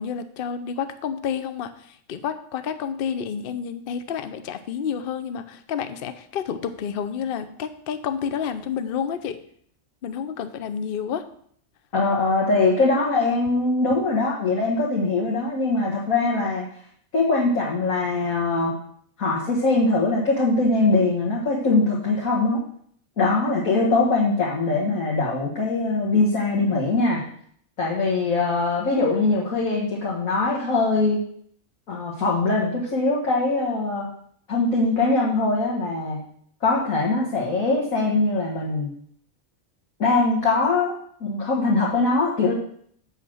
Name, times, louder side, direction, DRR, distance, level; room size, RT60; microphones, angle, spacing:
voice 1, 0.0-9.4 10.0-11.3, left 7 dB, 50° left, 10 dB, 0.7 m, -30 dB
voice 2, 11.9-16.7 17.1-18.7 19.2-22.6 23.2-27.2 27.8-31.2 31.9-34.1 34.5-36.2 36.6-38.9 40.0-40.9 41.2-42.5, left 3 dB, 80° left, -4 dB, 2.1 m, -22 dB
8.2 x 5.6 x 6.3 m, 0.63 s
omnidirectional pair, 1.4 m